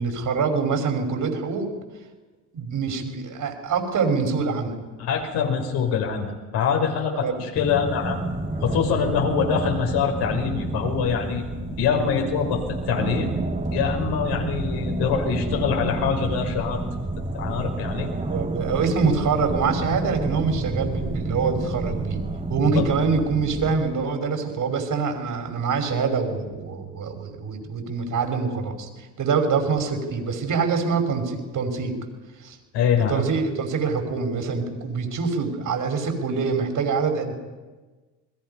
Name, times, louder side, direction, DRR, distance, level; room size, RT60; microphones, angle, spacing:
voice 1, 0.0-1.7 2.5-4.8 7.2-7.5 18.3-22.2 22.5-32.0 32.4-32.6 33.1-37.3, right 5 dB, 45° right, 5 dB, 5.5 m, -25 dB
voice 2, 5.0-8.2 8.6-11.4 11.8-13.3 13.7-16.8 17.3-18.1 22.6-22.9 32.7-33.2, left 6 dB, 60° left, 2 dB, 6.1 m, -24 dB
sound 1, 7.5-23.8, right 2 dB, 15° right, 3.2 m, -29 dB
29.5 x 21.5 x 5.6 m, 1.3 s
hypercardioid pair, 75°, 45 cm